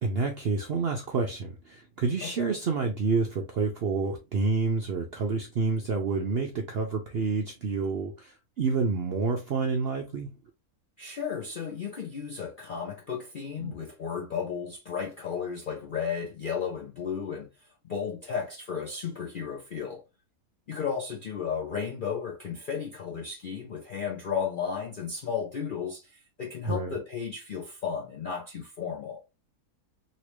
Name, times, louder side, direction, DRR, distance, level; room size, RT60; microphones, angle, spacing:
voice 1, 0.0-10.3 13.6-13.8 26.6-26.9, right 4 dB, 70° right, 0.5 m, -28 dB
voice 2, 2.2-2.5 11.0-17.5 17.8-20.0 20.7-29.2, left 6 dB, 65° left, 0.5 m, -34 dB
3.1 x 2.9 x 3.0 m
omnidirectional pair, 1.6 m